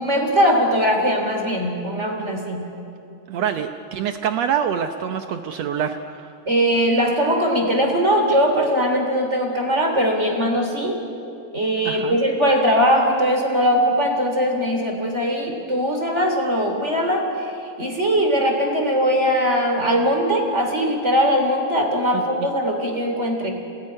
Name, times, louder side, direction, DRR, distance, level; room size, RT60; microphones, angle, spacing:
voice 1, 0.0-2.7 6.4-11.0 11.5-23.5, equal, 20° right, 3 dB, 3.2 m, -20 dB
voice 2, 3.3-6.3 11.8-12.2 22.1-22.2, right 8 dB, 85° right, 7 dB, 1.4 m, -25 dB
28.5 x 19.5 x 9.9 m, 2.7 s
omnidirectional pair, 4.2 m